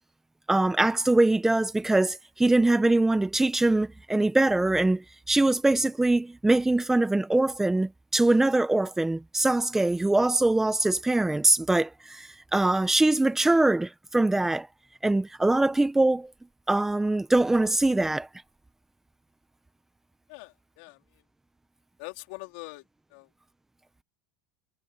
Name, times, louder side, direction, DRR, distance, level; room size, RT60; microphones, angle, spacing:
voice 1, 0.5-14.7 15.0-16.3 16.7-18.3, right 2 dB, 5° right, 1.2 m, -23 dB
voice 2, 20.3-21.2 22.0-22.8 23.1-23.3, left 26 dB, 70° left, 3.9 m, -43 dB
supercardioid pair, 120°, 5 cm